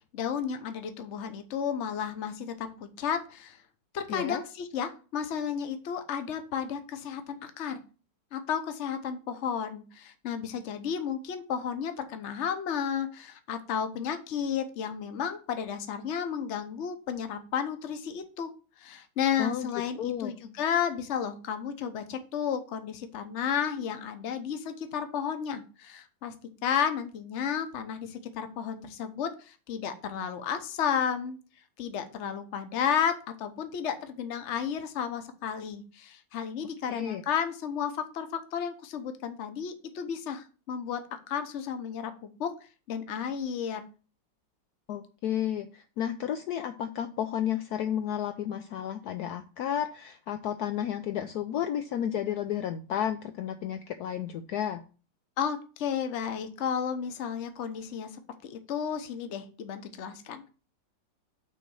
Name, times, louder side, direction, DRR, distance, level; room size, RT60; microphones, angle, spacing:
voice 1, 0.1-3.6 3.9-7.8 8.3-18.5 18.8-26.3 26.6-31.4 31.8-41.0 41.3-42.1 42.4-42.5 42.9-43.8 55.4-58.1 58.4-60.5, left 7 dB, 50° left, 8 dB, 1.0 m, -32 dB
voice 2, 4.1-4.4 19.4-19.7 20.0-20.3 36.9-37.2 44.9-54.8, left 10 dB, 70° left, 7 dB, 1.0 m, -32 dB
6.2 x 3.9 x 6.2 m, 0.36 s
omnidirectional pair, 1.9 m